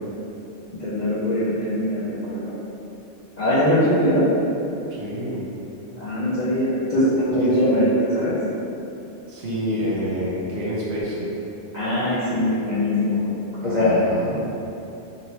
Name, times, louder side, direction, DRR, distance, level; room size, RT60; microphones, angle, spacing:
voice 1, 0.8-2.6 3.4-4.3 6.0-8.4 11.7-13.3 13.6-14.1 14.3-14.4, left 1 dB, 55° left, -10 dB, 0.5 m, -21 dB
voice 2, 4.9-5.4 7.4-7.9 9.3-11.3 13.6-14.4, equal, 65° right, -6 dB, 0.9 m, -28 dB
2.8 x 2.6 x 3.1 m, 2.9 s
omnidirectional pair, 1.2 m